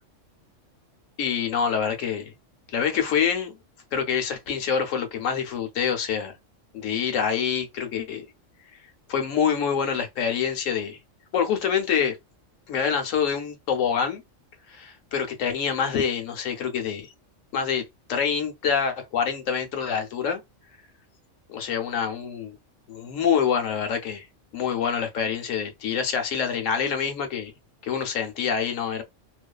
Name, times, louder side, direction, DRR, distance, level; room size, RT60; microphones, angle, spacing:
voice 1, 1.2-2.3 2.7-3.6 3.9-6.3 6.7-8.2 9.1-11.0 11.3-12.2 12.7-14.2 14.7-17.1 17.5-20.4 21.5-22.6 22.9-24.3 24.5-27.5 27.8-29.0, left 7 dB, 90° left, 1.0 m, -26 dB
2.5 x 2.3 x 2.2 m
omnidirectional pair, 1.3 m